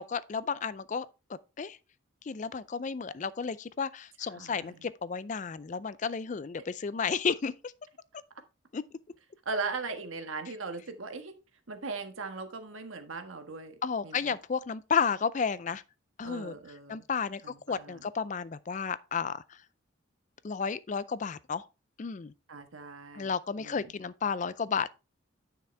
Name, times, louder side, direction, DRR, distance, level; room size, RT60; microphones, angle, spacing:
voice 1, 0.0-1.8 2.2-7.7 8.7-8.8 13.8-15.8 16.2-16.6 16.9-17.4 17.7-19.6 20.4-21.7 22.0-22.3 23.1-24.9, left 6 dB, 40° left, 0.4 m, -32 dB
voice 2, 4.3-4.9 9.4-11.3 11.7-14.3 16.2-17.0 17.4-18.1 22.5-23.3 23.6-23.9, right 4 dB, 85° right, 1.4 m, -39 dB
9.8 x 5.9 x 3.4 m
head